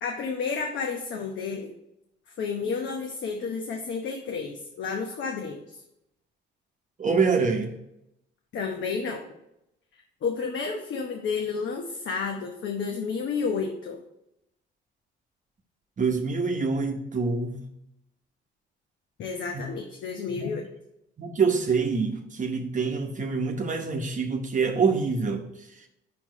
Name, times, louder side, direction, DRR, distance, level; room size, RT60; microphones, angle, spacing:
voice 1, 0.0-1.7 2.4-5.8 8.5-9.2 10.2-14.0 19.2-20.6, left 5 dB, 70° left, 2 dB, 1.0 m, -31 dB
voice 2, 7.0-7.8 16.0-17.6 19.5-19.6 20.3-20.5 21.2-25.5, right 4 dB, 40° right, 3 dB, 0.9 m, -26 dB
5.7 x 4.6 x 5.1 m, 0.84 s
cardioid pair, 90°, 20 cm